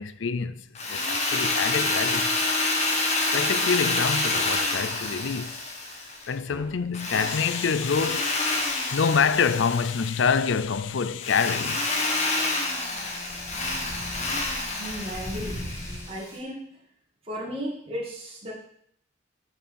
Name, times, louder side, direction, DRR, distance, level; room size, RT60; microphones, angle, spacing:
voice 1, 0.0-2.3 3.3-5.6 6.3-12.2, left 6 dB, 65° left, 0.5 m, -26 dB
Drill, 0.8-6.3 6.9-10.2 11.2-16.0, left 2 dB, 35° left, 1.4 m, -28 dB
sound 1, 6.4-16.4, equal, 15° left, 1.6 m, -42 dB
voice 2, 14.8-15.6 16.1-16.6 17.2-18.5, equal, 30° right, 2.4 m, -34 dB
8.3 x 5.9 x 5.6 m
head